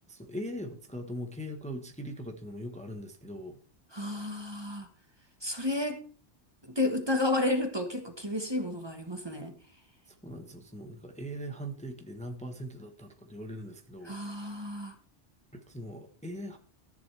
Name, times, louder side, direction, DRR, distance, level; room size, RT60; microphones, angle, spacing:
voice 1, 0.1-3.6 10.1-14.7 15.5-16.6, equal, 5° left, 5 dB, 1.1 m, -41 dB
voice 2, 3.9-4.9 5.4-6.0 6.6-9.5 14.0-15.0, left 2 dB, 25° right, 5 dB, 1.3 m, -31 dB
14.0 x 10.5 x 3.4 m, 0.40 s
omnidirectional pair, 1.2 m